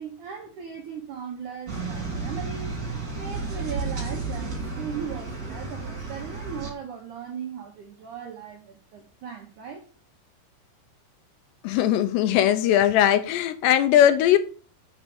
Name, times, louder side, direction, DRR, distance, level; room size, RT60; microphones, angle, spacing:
voice 1, 0.0-2.7 3.2-9.9, right 7 dB, 75° right, 1.8 m, -38 dB
sound 1, 1.7-6.7, right 3 dB, 30° right, 2.6 m, -32 dB
voice 2, 11.6-14.4, left 11 dB, 80° left, 2.7 m, -19 dB
6.5 x 5.8 x 6.9 m
omnidirectional pair, 5.1 m